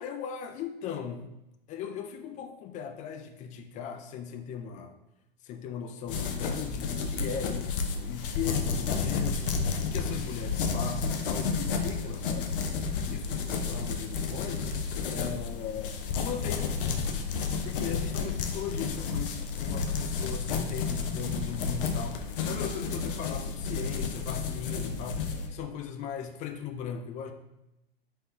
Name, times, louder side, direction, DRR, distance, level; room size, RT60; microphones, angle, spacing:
voice 1, 0.0-1.3 1.7-5.0 5.4-14.7 15.0-16.9 17.6-27.3, left 7 dB, 25° left, 7 dB, 0.4 m, -38 dB
sound 1, 6.1-25.5, left 5 dB, 65° left, 0.7 m, -31 dB
4.2 x 3.6 x 2.8 m, 0.90 s
hypercardioid pair, 100°, 29 cm